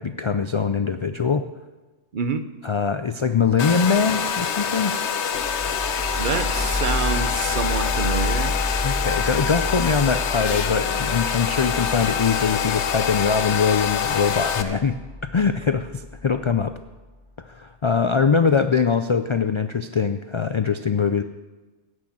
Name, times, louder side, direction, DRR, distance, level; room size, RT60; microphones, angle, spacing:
voice 1, 0.0-1.5 2.6-4.9 8.8-16.8 17.5-21.2, left 5 dB, 55° left, 10 dB, 0.3 m, -22 dB
Domestic sounds home sounds, 3.6-14.6, left 8 dB, 75° left, 1.1 m, -25 dB
sound 1, 5.3-17.0, left 1 dB, 10° left, 2.4 m, -31 dB
voice 2, 6.2-8.5, right 5 dB, 50° right, 10 dB, 0.9 m, -27 dB
16.0 x 6.4 x 8.5 m, 1.2 s
omnidirectional pair, 1.2 m